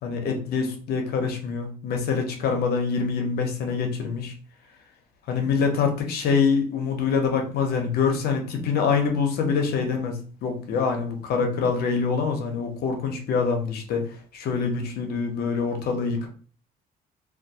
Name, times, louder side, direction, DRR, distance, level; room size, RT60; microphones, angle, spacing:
voice 1, 0.0-4.3 5.3-14.0 14.3-16.3, left 5 dB, 65° left, 4 dB, 0.7 m, -25 dB
2.2 x 2.2 x 2.7 m, 0.41 s
cardioid pair, 110°, 17 cm